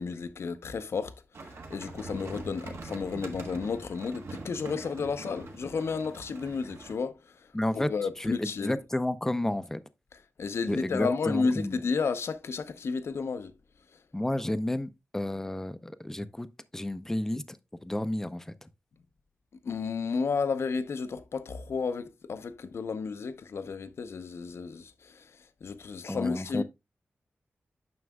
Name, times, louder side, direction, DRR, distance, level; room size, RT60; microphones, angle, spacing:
voice 1, 0.0-8.8 10.1-13.5 13.9-14.0 19.6-26.6, left 5 dB, 75° left, 0.7 m, -32 dB
sound 1, 1.3-6.9, right 3 dB, 75° right, 1.4 m, -43 dB
voice 2, 7.5-7.9 8.2-9.8 10.7-11.8 14.1-16.5 16.7-17.6 17.8-18.7 26.1-26.6, left 1 dB, 10° left, 0.4 m, -31 dB
9.4 x 6.2 x 2.2 m
wide cardioid pair, 160°, 4 cm